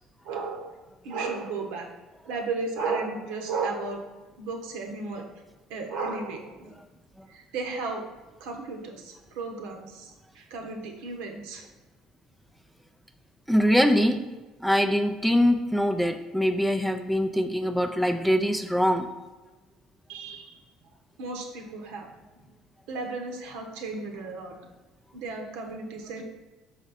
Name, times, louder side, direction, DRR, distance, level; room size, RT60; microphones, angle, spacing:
voice 1, 0.2-0.8 1.0-1.9 2.2-4.0 4.4-5.3 5.7-6.8 7.3-8.0 8.4-11.7 20.1-20.6 21.2-22.1 22.9-24.6 25.1-26.2, right 3 dB, 85° right, 2 dB, 1.1 m, -34 dB
voice 2, 13.5-19.2, equal, ahead, 6 dB, 0.3 m, -23 dB
6.0 x 4.2 x 4.1 m, 1.2 s
cardioid pair, 145°, 0 cm